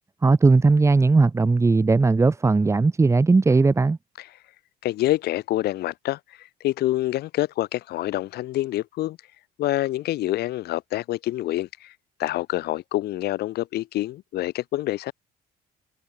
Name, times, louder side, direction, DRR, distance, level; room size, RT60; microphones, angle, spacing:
voice 1, 0.2-4.0, right 3 dB, 15° right, 1.0 m, -18 dB
voice 2, 4.8-9.2 9.6-11.9 12.2-15.1, left 15 dB, 70° left, 1.2 m, -27 dB
cardioid pair, 110°, 17 cm